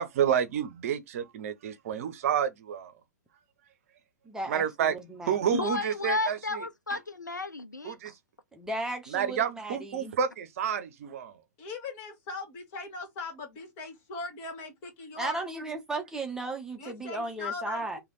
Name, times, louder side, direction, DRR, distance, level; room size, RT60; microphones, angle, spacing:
voice 1, 0.0-2.9 4.5-4.9 5.2-6.4 7.8-8.1 9.1-11.3, right 8 dB, 50° right, 0.8 m, -29 dB
voice 2, 4.2-5.5 8.5-10.1 15.2-18.0, right 2 dB, 5° right, 0.9 m, -35 dB
voice 3, 5.5-8.1, left 3 dB, 85° left, 0.6 m, -32 dB
voice 4, 11.6-15.4 16.8-18.0, left 3 dB, 35° left, 2.1 m, -39 dB
3.3 x 2.9 x 4.0 m
figure-of-eight pair, 110°, 10 cm